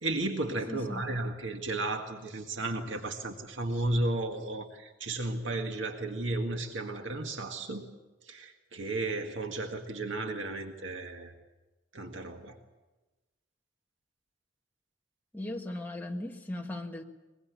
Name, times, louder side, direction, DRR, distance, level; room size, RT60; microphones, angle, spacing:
voice 1, 0.0-7.9 8.2-11.3 11.9-12.6, right 2 dB, 85° right, 4 dB, 1.9 m, -34 dB
voice 2, 0.7-1.1 15.3-17.0, left 1 dB, 10° left, 1 dB, 1.7 m, -38 dB
23.0 x 21.5 x 8.4 m, 1.1 s
head